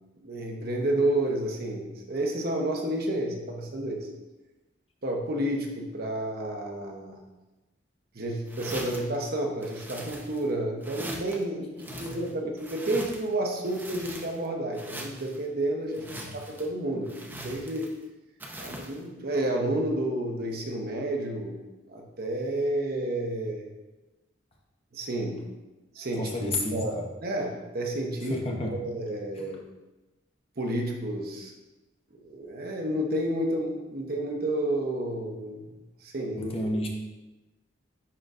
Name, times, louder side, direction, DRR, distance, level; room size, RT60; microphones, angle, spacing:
voice 1, 0.2-4.1 5.0-7.2 8.1-16.0 16.5-17.9 18.6-21.6 21.9-23.7 24.9-25.4 25.9-28.4 28.8-29.6 30.6-31.5 32.2-35.7 36.0-36.5, right 1 dB, 55° right, 1 dB, 0.9 m, -30 dB
sound 1, 8.5-9.1 9.6-10.5 10.8-11.4 11.8-13.3 13.6-14.5 14.7-15.4 15.9-16.7 17.1-18.0 18.4-19.0, right 1 dB, 10° right, 0.6 m, -42 dB
voice 2, 11.9-12.2 16.0-16.4 26.1-27.0 28.2-28.8 29.3-29.5 36.4-36.9, left 1 dB, 30° left, 0 dB, 0.8 m, -32 dB
10.0 x 3.9 x 2.5 m, 1.1 s
head